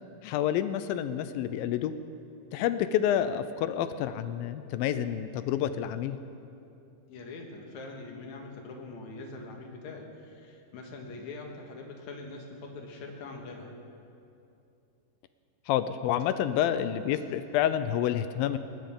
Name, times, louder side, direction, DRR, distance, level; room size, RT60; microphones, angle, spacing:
voice 1, 0.2-1.9 2.5-6.2 15.7-18.6, left 10 dB, 80° left, 11 dB, 2.3 m, -28 dB
voice 2, 7.1-13.7, left 3 dB, 55° left, 1 dB, 2.7 m, -43 dB
19.0 x 19.0 x 3.8 m, 2.7 s
omnidirectional pair, 4.3 m